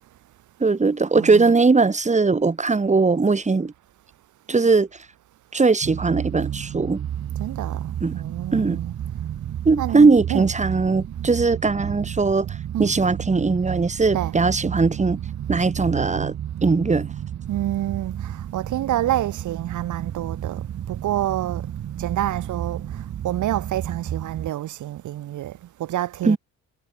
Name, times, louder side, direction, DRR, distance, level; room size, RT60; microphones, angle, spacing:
voice 1, 0.6-3.7 4.5-4.9 5.5-7.0 8.0-8.1 8.5-8.8 9.6-15.2 15.5-16.3 16.6-17.1 26.2-26.4, right 4 dB, 25° right, 2.8 m, -19 dB
voice 2, 1.1-1.5 7.4-8.9 9.8-10.5 12.7-13.0 14.1-14.4 17.5-21.7 22.0-26.4, right 13 dB, 75° right, 1.9 m, -28 dB
sound 1, 5.8-24.5, right 10 dB, 60° right, 1.7 m, -31 dB
cardioid pair, 90°, 30 cm